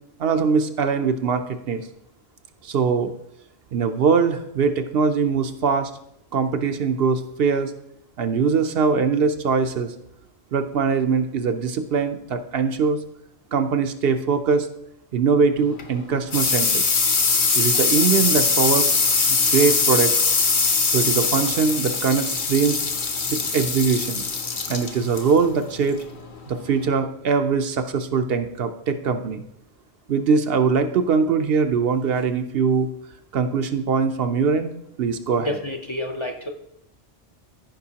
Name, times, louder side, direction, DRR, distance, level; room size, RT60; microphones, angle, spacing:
voice 1, 0.2-1.8 2.6-3.1 3.7-5.9 6.3-7.7 8.2-9.9 10.5-13.0 13.5-14.7 15.1-16.8 17.6-19.0 19.3-20.2 20.9-22.8 23.3-24.2 24.7-26.0 26.5-29.4 30.1-32.9 33.3-35.6, right 5 dB, 65° right, 8 dB, 0.8 m, -22 dB
sound 1, 15.6-26.9, left 4 dB, 50° left, 1.0 m, -22 dB
voice 2, 35.4-36.5, left 1 dB, 35° left, 3 dB, 0.6 m, -29 dB
14.0 x 5.3 x 2.8 m, 0.80 s
omnidirectional pair, 1.1 m